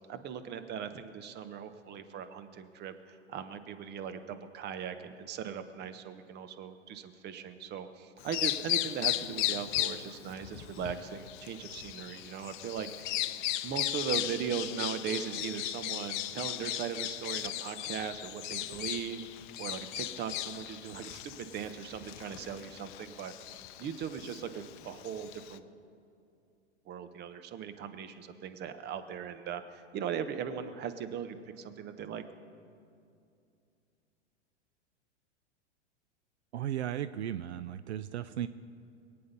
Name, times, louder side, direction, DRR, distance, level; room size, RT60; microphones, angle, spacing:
voice 1, 0.1-13.2 13.6-19.3 19.6-23.3 23.8-25.7 26.9-32.2, right 8 dB, 30° right, 10 dB, 1.0 m, -39 dB
Bird vocalization bird call bird song, 8.2-25.6, left 14 dB, 45° left, 0.6 m, -37 dB
voice 2, 36.5-38.5, right 11 dB, 70° right, 13 dB, 0.5 m, -35 dB
22.5 x 8.8 x 5.3 m, 2.5 s
figure-of-eight pair, 100°, 35 cm